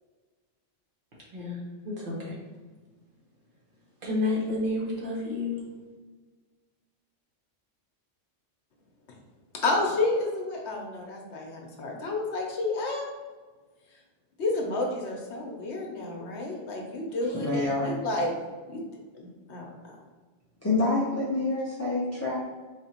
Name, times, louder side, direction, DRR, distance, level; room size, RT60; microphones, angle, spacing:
voice 1, 1.8-2.3 4.0-5.6, left 2 dB, 45° right, -4 dB, 1.1 m, -30 dB
voice 2, 9.6-13.1 14.4-18.3 18.7-18.8 19.1-19.9, left 2 dB, 70° left, 0 dB, 1.0 m, -30 dB
voice 3, 17.3-17.9 20.6-22.4, left 2 dB, 20° left, -8 dB, 0.4 m, -27 dB
4.2 x 2.9 x 2.8 m, 1.3 s
omnidirectional pair, 1.2 m